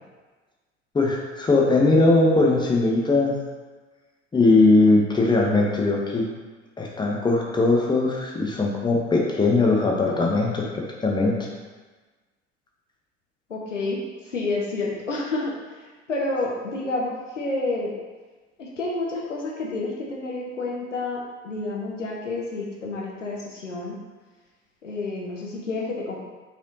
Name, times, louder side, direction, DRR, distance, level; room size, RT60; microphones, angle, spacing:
voice 1, 0.9-3.3 4.3-6.3 6.8-11.3, left 2 dB, 10° left, -1 dB, 0.8 m, -20 dB
voice 2, 13.5-14.0 14.3-15.5 16.1-17.9 18.6-23.9 24.8-26.2, left 2 dB, 85° left, -2 dB, 0.6 m, -29 dB
5.0 x 3.4 x 2.8 m, 1.3 s
figure-of-eight pair, 60°, 36 cm